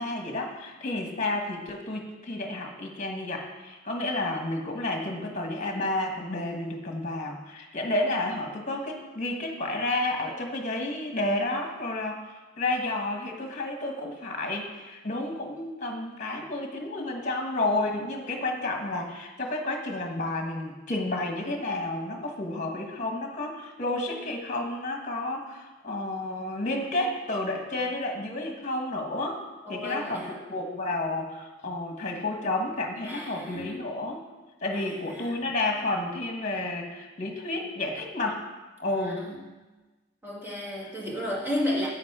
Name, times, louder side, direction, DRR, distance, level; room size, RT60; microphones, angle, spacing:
voice 1, 0.0-12.2 12.6-29.4 29.7-34.2 34.6-38.4 38.8-39.2, left 2 dB, 40° left, 2 dB, 1.3 m, -31 dB
voice 2, 29.6-30.4 33.0-33.8 34.7-35.5 39.0-39.4 40.2-41.9, left 1 dB, 10° right, -6 dB, 2.1 m, -33 dB
10.0 x 8.6 x 3.6 m, 1.2 s
head